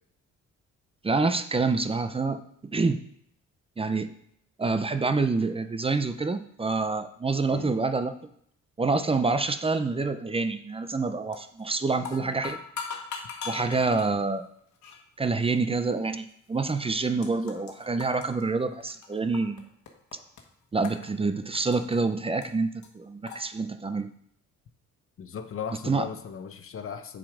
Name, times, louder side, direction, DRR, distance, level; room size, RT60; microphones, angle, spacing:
voice 1, 1.0-3.0 3.8-4.1 4.6-8.1 8.8-12.6 13.5-14.5 15.2-19.6 20.7-24.1 25.9-26.1, right 3 dB, 20° right, 10 dB, 0.6 m, -27 dB
sound 1, 11.3-11.6 11.9-14.1 14.8-15.0 15.8-15.9 16.7-16.8 17.0-17.7 18.0-19.6 19.9-20.4 20.8-22.0 22.4-22.5 22.8-22.9 23.3-23.4, left 6 dB, 70° left, 1.4 m, -39 dB
voice 2, 11.9-12.3 17.5-17.6 25.2-27.2, left 7 dB, 45° left, 8 dB, 0.9 m, -37 dB
7.3 x 5.1 x 5.0 m, 0.68 s
cardioid pair, 90°, 30 cm